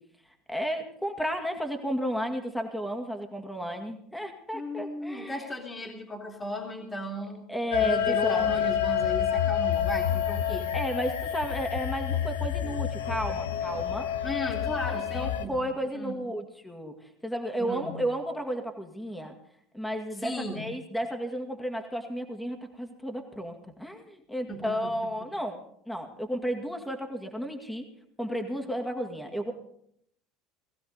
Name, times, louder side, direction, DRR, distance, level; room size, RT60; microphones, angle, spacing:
voice 1, 0.5-5.5 7.5-8.7 10.7-14.1 14.9-19.3 19.7-27.9 28.2-29.5, equal, 5° left, 3 dB, 2.2 m, -33 dB
voice 2, 4.5-7.4 7.8-10.7 14.2-16.1 17.6-18.1 20.2-20.7 24.5-25.0, left 1 dB, 20° left, 1 dB, 2.8 m, -36 dB
sound 1, 7.7-15.5, left 9 dB, 75° left, 1.1 m, -28 dB
19.5 x 15.5 x 4.0 m, 0.69 s
hypercardioid pair, 70°, 0 cm